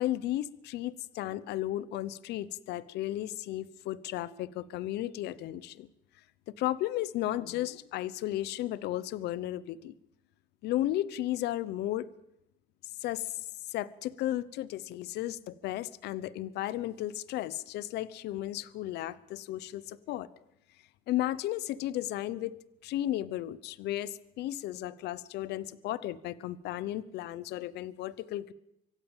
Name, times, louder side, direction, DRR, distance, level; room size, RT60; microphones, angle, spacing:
voice 1, 0.0-5.9 6.6-9.9 10.6-12.1 13.0-13.4 13.7-20.3 21.1-22.6 22.8-28.5, left 14 dB, 80° left, 18 dB, 0.9 m, -34 dB
24.5 x 16.0 x 7.3 m, 0.82 s
cardioid pair, 110°, 17 cm